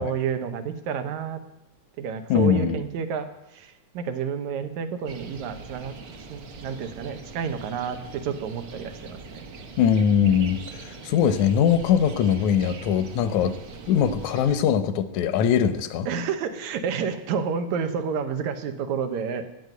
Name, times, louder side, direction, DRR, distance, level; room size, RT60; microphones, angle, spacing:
voice 1, 0.0-1.4 2.0-3.3 3.5-5.9 6.3-9.5 16.1-19.4, right 6 dB, 80° right, 8 dB, 2.4 m, -30 dB
voice 2, 2.3-2.8 9.8-13.6 13.9-16.1, left 8 dB, 80° left, 12 dB, 2.2 m, -21 dB
sound 1, 5.1-14.6, right 4 dB, 55° right, 1.3 m, -42 dB
10.5 x 9.3 x 9.3 m, 0.88 s
omnidirectional pair, 3.3 m